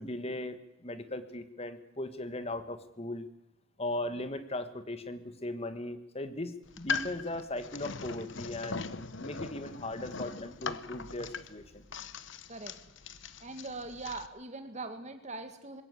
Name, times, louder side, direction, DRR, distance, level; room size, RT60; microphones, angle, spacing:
voice 1, 0.0-3.3 3.8-8.8 9.2-11.8, left 1 dB, 30° left, 11 dB, 1.5 m, -38 dB
sound 1, 6.6-14.3, left 5 dB, 60° left, 1.0 m, -40 dB
voice 2, 13.4-15.8, right 3 dB, 35° right, 7 dB, 2.1 m, -41 dB
21.0 x 17.0 x 8.3 m, 0.89 s
head